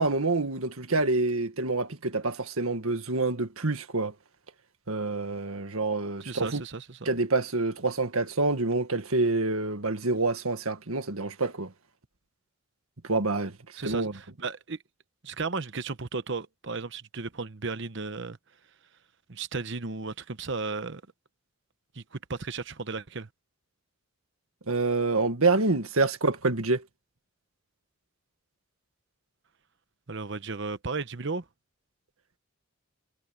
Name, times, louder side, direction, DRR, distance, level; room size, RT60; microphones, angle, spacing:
voice 1, 0.0-4.1 4.9-6.6 7.1-11.7 13.0-13.6 13.8-14.1 24.7-26.8, right 3 dB, 75° right, 1.8 m, -27 dB
voice 2, 6.2-7.1 13.8-14.8 15.2-18.4 19.3-21.0 21.9-23.3 30.1-31.4, right 4 dB, 55° right, 1.0 m, -34 dB
head